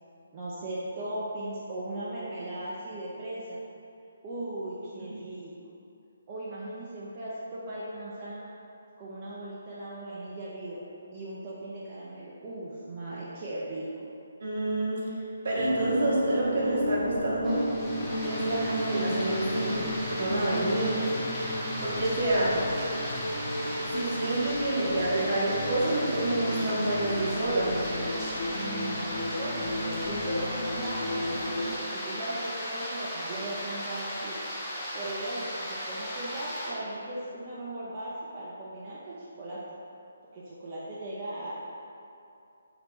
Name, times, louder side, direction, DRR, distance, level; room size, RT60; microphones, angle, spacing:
voice 1, 0.3-3.6 4.2-5.5 6.3-8.5 9.0-10.8 11.1-14.1 28.5-31.5 31.9-34.4 34.9-39.6 40.3-41.5, right 1 dB, 30° right, -8 dB, 0.4 m, -38 dB
voice 2, 14.4-17.6 18.2-19.8 20.1-21.1 21.8-22.6 23.8-27.7, right 2 dB, 55° right, -6 dB, 0.9 m, -28 dB
sound 1, 15.6-31.8, left 1 dB, 60° left, 0.6 m, -33 dB
sound 2, 17.4-36.7, equal, 5° left, 0.7 m, -36 dB
2.8 x 2.8 x 3.4 m, 2.6 s
figure-of-eight pair, 145°, 0 cm